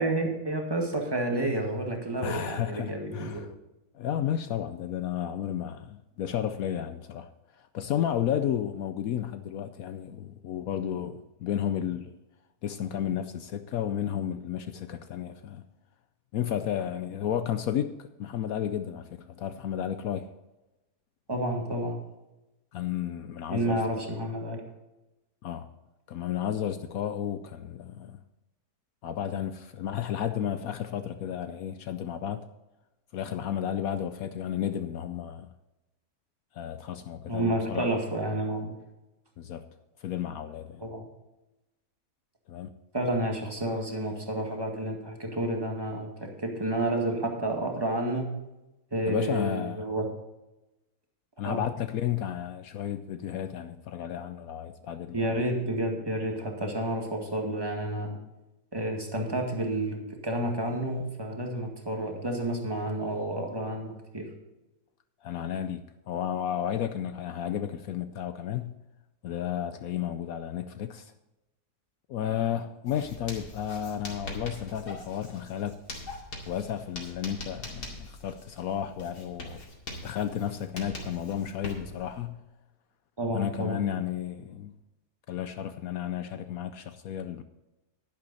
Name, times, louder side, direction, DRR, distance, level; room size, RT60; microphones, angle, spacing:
voice 1, 0.0-3.5 21.3-22.0 23.5-24.6 37.3-38.7 40.8-41.1 42.9-48.3 48.9-50.0 51.4-51.6 55.1-58.2 58.7-60.0 60.2-64.3 83.2-83.8, right 1 dB, 15° right, 1.9 m, -30 dB
voice 2, 2.2-3.5 3.9-7.3 7.6-12.1 12.6-15.6 16.3-20.3 22.7-24.1 25.4-25.7 26.1-28.2 29.0-32.5 33.1-35.5 36.5-37.9 39.4-39.7 40.0-40.9 42.5-42.7 49.1-49.8 51.4-55.4 65.2-68.7 69.2-71.1 72.1-75.8 76.5-79.6 80.0-82.4 83.3-84.7 85.3-87.4, left 10 dB, 70° left, 1.0 m, -32 dB
Writing, 72.9-82.2, left 1 dB, 85° left, 2.9 m, -43 dB
11.0 x 10.5 x 4.1 m
omnidirectional pair, 1.6 m